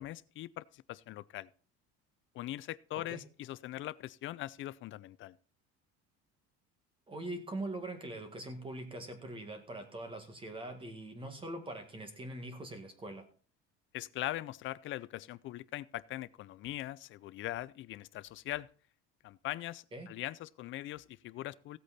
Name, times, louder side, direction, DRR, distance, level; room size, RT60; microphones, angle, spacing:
voice 1, 0.0-1.5 2.3-5.3 13.9-18.7 19.2-21.8, left 15 dB, 45° left, 0.5 m, -41 dB
voice 2, 7.1-13.3 19.9-20.1, right 1 dB, 20° right, 1.9 m, -42 dB
15.5 x 8.3 x 4.2 m
cardioid pair, 160°, 29 cm